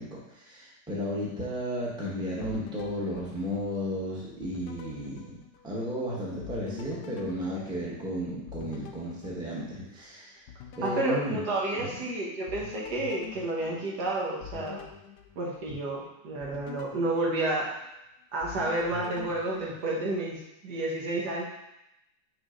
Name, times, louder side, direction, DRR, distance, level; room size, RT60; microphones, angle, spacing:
voice 1, 0.0-10.5 10.8-11.4 11.8-11.9, equal, 5° right, -5 dB, 1.0 m, -34 dB
sound 1, 2.4-4.0 4.4-6.0 6.4-10.1 10.5-12.1 12.5-15.9 16.4-18.0 18.4-20.4, left 10 dB, 75° left, 1.2 m, -46 dB
voice 2, 10.8-14.8 15.3-17.7 18.3-21.4, right 2 dB, 65° right, -3 dB, 1.6 m, -30 dB
5.0 x 4.0 x 5.0 m, 0.88 s
omnidirectional pair, 2.0 m